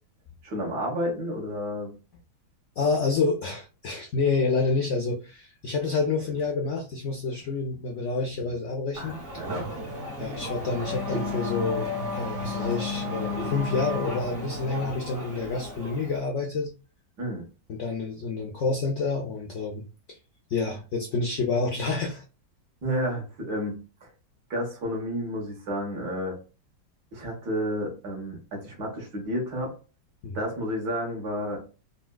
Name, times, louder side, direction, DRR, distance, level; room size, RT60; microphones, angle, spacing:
voice 1, 0.4-1.9 9.0-9.7 17.2-17.4 22.8-23.8 24.0-24.1 24.5-26.4 27.1-29.8 30.3-31.6, equal, 70° right, 1.8 m, -31 dB
voice 2, 2.8-9.2 10.2-11.9 12.1-16.7 17.7-19.8 20.1-20.2 20.5-22.2 30.2-30.4, left 4 dB, 90° left, 0.6 m, -28 dB
Race car auto racing / Accelerating revving vroom, 8.9-16.2, left 2 dB, 45° right, 0.8 m, -33 dB
4.1 x 2.2 x 2.2 m
omnidirectional pair, 1.9 m